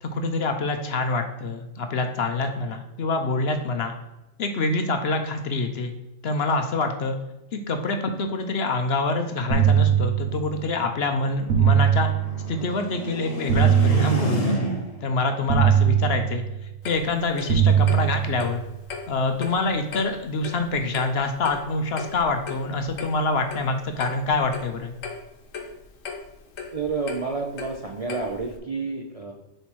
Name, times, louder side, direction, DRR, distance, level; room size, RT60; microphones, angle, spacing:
voice 1, 0.0-3.9 4.4-5.9 6.2-7.2 7.5-12.1 12.5-14.7 15.0-16.4 16.8-18.6 19.1-24.9, left 3 dB, 60° left, 6 dB, 0.9 m, -26 dB
sound 1, 9.5-10.7 11.5-12.7 13.5-14.7 15.5-16.7 17.5-18.7, right 9 dB, 65° right, 1.2 m, -21 dB
sound 2, 9.6-15.1, right 1 dB, 30° left, 1.0 m, -31 dB
Clock, 16.8-28.6, left 5 dB, 85° left, 1.3 m, -38 dB
voice 2, 26.7-29.3, right 4 dB, 40° right, 0 dB, 0.5 m, -29 dB
7.0 x 3.4 x 4.5 m, 0.96 s
omnidirectional pair, 1.3 m